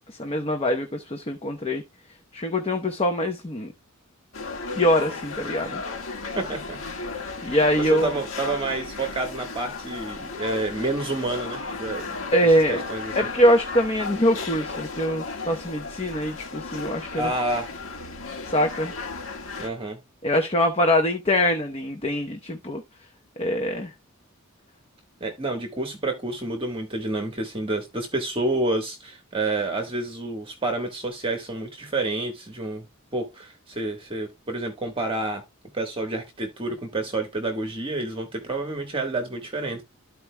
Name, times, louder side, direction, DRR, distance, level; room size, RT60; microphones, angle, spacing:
voice 1, 0.1-1.8 2.3-3.7 4.8-5.8 7.4-8.2 12.3-12.8 13.2-17.3 18.4-18.9 20.2-22.8 23.4-23.9, equal, 30° left, 0.9 m, -23 dB
sound 1, 4.3-19.7, left 4 dB, 70° left, 1.7 m, -35 dB
voice 2, 6.3-6.8 7.4-12.3 12.7-13.2 17.2-17.7 19.6-20.0 25.2-32.9 33.1-35.4 35.7-39.8, right 2 dB, 25° right, 1.3 m, -29 dB
13.5 x 4.6 x 2.2 m
head